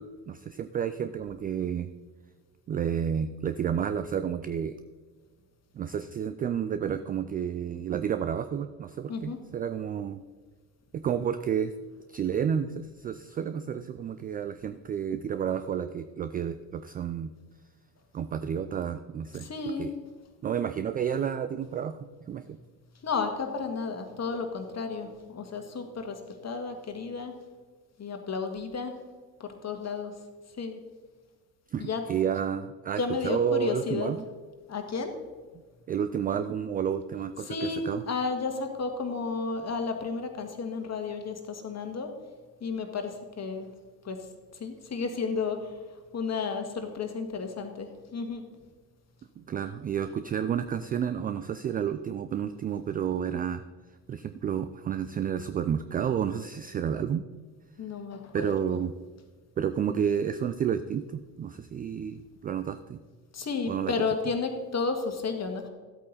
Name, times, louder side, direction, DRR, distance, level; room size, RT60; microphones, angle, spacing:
voice 1, 0.0-1.9 2.7-4.8 5.7-10.2 10.9-11.7 12.1-17.3 18.1-19.5 19.8-19.9 20.4-22.0 22.3-22.4 31.7-34.3 35.9-38.0 49.4-53.6 54.1-57.2 58.3-58.9 59.6-63.0 63.7-63.9, right 8 dB, 20° right, 11 dB, 0.3 m, -30 dB
voice 2, 19.4-19.9 23.0-27.3 28.0-28.9 29.4-30.1 30.6-30.8 31.8-32.0 33.0-34.1 34.7-35.1 37.5-42.1 42.6-43.7 44.0-44.3 44.6-45.7 46.1-48.4 57.8-58.6 63.3-65.7, left 4 dB, 30° left, 5 dB, 1.9 m, -32 dB
13.0 x 8.3 x 4.1 m, 1.4 s
hypercardioid pair, 60°, 50 cm